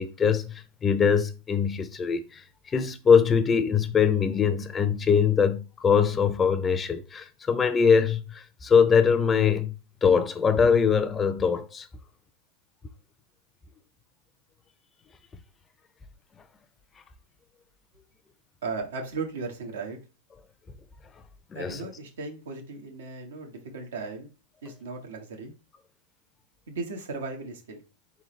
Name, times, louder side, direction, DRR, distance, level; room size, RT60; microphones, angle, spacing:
voice 1, 0.0-9.7 10.0-11.9 21.5-21.8, left 6 dB, 20° left, 0.5 m, -22 dB
voice 2, 18.6-20.0 21.5-24.3 24.6-25.5 26.7-27.8, right 4 dB, 85° right, 1.4 m, -36 dB
3.9 x 3.8 x 3.2 m
hypercardioid pair, 125°, 0 cm